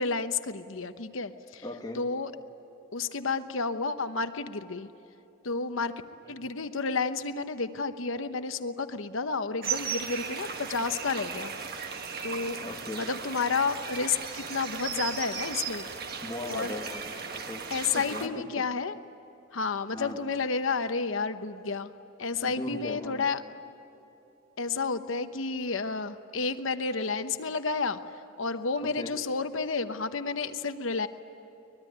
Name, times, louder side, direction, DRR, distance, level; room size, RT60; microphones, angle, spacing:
voice 1, 0.0-1.6 1.9-2.3 2.9-4.9 5.4-5.9 6.3-12.6 12.9-15.8 16.5-16.8 17.7-19.0 19.5-21.9 22.2-23.4 24.6-28.0 28.4-31.1, left 4 dB, 70° left, 10 dB, 1.0 m, -31 dB
voice 2, 1.6-2.0 6.2-6.4 12.6-13.0 16.2-17.7 17.9-18.3 19.9-20.2 22.4-23.2 28.8-29.1, left 1 dB, 20° left, 0 dB, 1.7 m, -38 dB
sound 1, 9.6-18.3, right 6 dB, 45° right, 1.5 m, -36 dB
23.5 x 21.5 x 9.4 m, 3.0 s
head